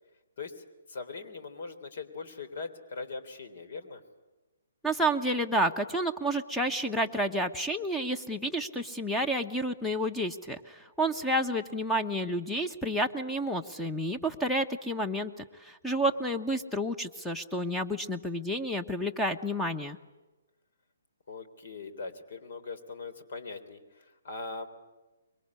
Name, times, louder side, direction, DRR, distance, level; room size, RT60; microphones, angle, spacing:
voice 1, 0.4-4.0 11.1-11.5 16.1-16.4 21.3-24.7, left 4 dB, 55° left, 11 dB, 3.4 m, -41 dB
voice 2, 4.8-20.0, right 1 dB, 5° left, 9 dB, 1.1 m, -30 dB
25.5 x 23.0 x 9.8 m, 1.1 s
figure-of-eight pair, 135°, 0 cm